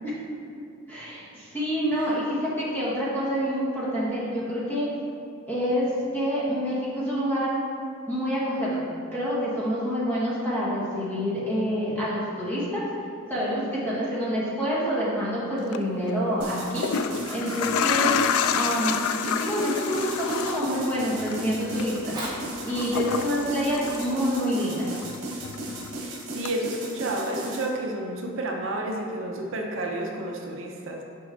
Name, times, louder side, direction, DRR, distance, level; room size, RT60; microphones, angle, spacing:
voice 1, 0.9-4.9 5.5-7.6 8.1-8.8 9.1-12.8 13.3-16.9 17.3-18.1 18.5-19.0 19.3-22.2 22.6-24.9, equal, 10° left, -9 dB, 1.4 m, -27 dB
sound 1, 15.6-15.8 16.6-24.6 24.9-26.0 26.5-26.6, left 7 dB, 80° left, 0.3 m, -29 dB
sound 2, 16.4-27.7, right 1 dB, 80° right, 1.3 m, -36 dB
Fire, 21.9-26.8 27.5-27.6, right 1 dB, 20° right, 1.3 m, -43 dB
voice 2, 26.0-31.0, right 1 dB, 60° right, 1 dB, 0.6 m, -31 dB
6.4 x 5.1 x 3.8 m, 2.5 s
head